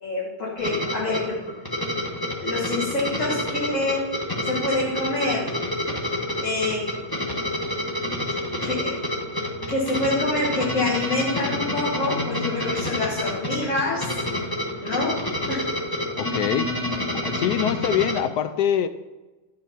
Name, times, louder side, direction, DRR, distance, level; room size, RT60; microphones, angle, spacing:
voice 1, 0.0-1.4 2.3-4.1 4.4-5.6 6.4-6.9 8.6-9.1 9.7-14.2 14.8-15.7, left 2 dB, 40° left, -5 dB, 1.8 m, -27 dB
sound 1, 0.6-18.2, left 1 dB, 15° left, 0.9 m, -28 dB
voice 2, 16.2-16.8 17.2-18.9, left 10 dB, 75° left, 11 dB, 0.9 m, -24 dB
11.5 x 4.6 x 5.7 m, 1.1 s
omnidirectional pair, 2.1 m